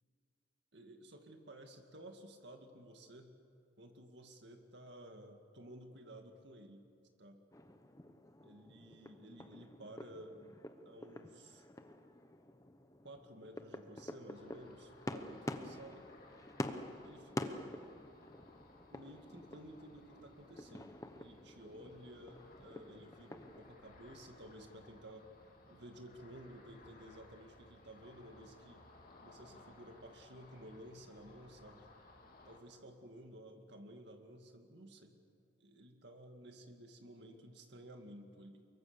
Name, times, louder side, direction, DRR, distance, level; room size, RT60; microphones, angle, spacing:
voice 1, 0.7-3.3 3.8-6.8 7.2-7.4 8.4-10.6 10.9-11.6 13.0-16.1 17.0-17.6 18.9-20.9 21.2-25.2 25.7-28.8 29.2-31.9 32.4-35.2 35.6-38.7, right 1 dB, 55° right, 4 dB, 2.3 m, -54 dB
sound 1, 7.5-23.7, left 1 dB, 15° left, 0.9 m, -48 dB
Ocean, 14.3-32.6, left 2 dB, 45° left, 2.7 m, -61 dB
24.5 x 22.5 x 7.0 m, 2.4 s
head